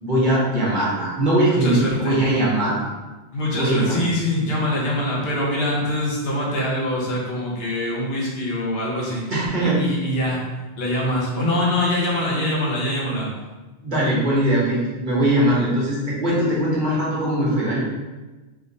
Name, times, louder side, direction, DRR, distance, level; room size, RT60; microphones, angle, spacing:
voice 1, 0.0-2.9 3.5-3.9 9.3-9.8 13.8-17.8, right 1 dB, 50° right, -7 dB, 1.1 m, -21 dB
voice 2, 1.5-2.4 3.3-9.2 9.6-13.3, left 1 dB, 65° left, -4 dB, 1.1 m, -24 dB
3.5 x 3.2 x 2.6 m, 1.2 s
omnidirectional pair, 1.1 m